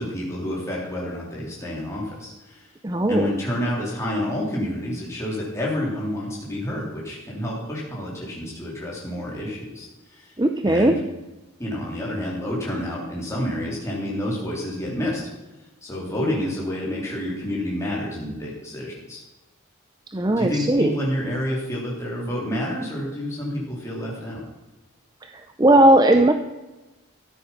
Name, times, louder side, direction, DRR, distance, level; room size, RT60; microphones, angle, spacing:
voice 1, 0.0-2.7 3.1-10.3 10.6-10.9 11.6-15.2 15.8-19.2 20.4-24.4, left 1 dB, 15° left, -4 dB, 3.5 m, -29 dB
voice 2, 2.8-3.3 10.4-11.0 20.1-21.0 25.2-26.3, right 1 dB, 20° right, 7 dB, 0.6 m, -18 dB
13.5 x 9.1 x 5.7 m, 1.1 s
head